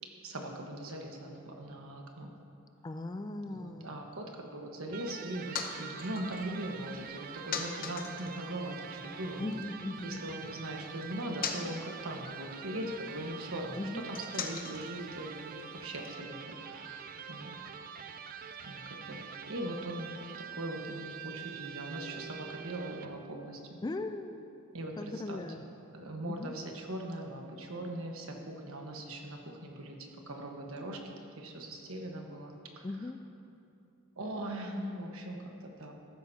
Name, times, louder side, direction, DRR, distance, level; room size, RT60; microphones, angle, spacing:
voice 1, 0.2-2.3 3.5-9.5 10.0-17.6 18.7-19.2 19.5-20.1 20.6-23.8 24.7-25.4 25.9-31.0 31.4-32.8 34.2-35.4 35.8-35.9, right 1 dB, 65° right, 2 dB, 1.3 m, -40 dB
voice 2, 2.8-4.1 9.4-10.3 13.8-14.1 23.8-24.6 25.0-25.7 26.2-26.6 32.8-33.2, left 2 dB, 20° left, 8 dB, 0.3 m, -39 dB
Electric guitar, 4.9-23.3, right 7 dB, 40° right, 0.5 m, -46 dB
sound 1, 5.0-9.7 9.9-16.1, left 6 dB, 40° left, 0.8 m, -44 dB
14.0 x 12.5 x 2.8 m, 2.7 s
head